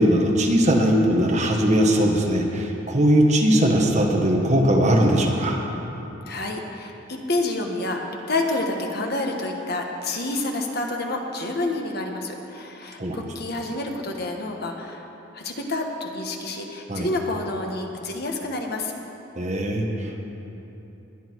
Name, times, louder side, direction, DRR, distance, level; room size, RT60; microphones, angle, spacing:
voice 1, 0.0-5.6 13.0-13.2 16.9-17.1 19.4-20.3, equal, 35° right, 1 dB, 1.5 m, -20 dB
voice 2, 6.3-15.1 15.3-18.9, left 2 dB, 55° left, 2 dB, 1.4 m, -28 dB
20.5 x 10.5 x 4.7 m, 3.0 s
head